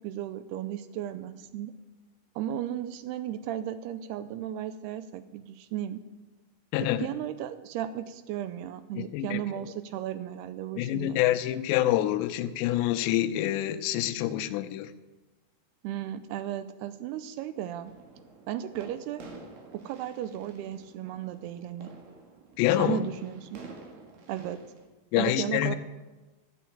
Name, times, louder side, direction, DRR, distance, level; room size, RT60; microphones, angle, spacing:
voice 1, 0.0-1.7 2.4-6.0 6.8-11.2 15.8-17.9 18.5-19.3 19.7-21.9 22.8-23.7 24.3-24.7 25.2-25.8, right 11 dB, 80° right, 13 dB, 2.5 m, -35 dB
voice 2, 6.7-7.1 9.0-9.4 10.8-14.9 22.6-23.0 25.1-25.8, left 13 dB, 90° left, 10 dB, 2.9 m, -26 dB
sound 1, 17.8-24.9, right 3 dB, 60° right, 3.1 m, -49 dB
12.0 x 8.3 x 8.6 m, 1.2 s
omnidirectional pair, 4.9 m